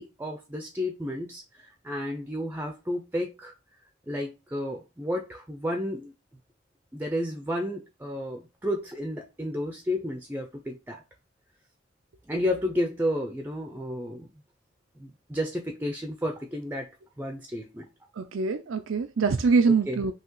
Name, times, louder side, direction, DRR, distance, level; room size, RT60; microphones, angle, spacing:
voice 1, 0.0-3.5 4.1-6.1 6.9-11.0 12.3-14.3 15.0-16.9 17.2-17.9 19.7-20.0, left 1 dB, 10° right, 0.5 m, -32 dB
voice 2, 18.2-20.1, right 4 dB, 80° right, 0.5 m, -24 dB
5.6 x 2.9 x 3.0 m
head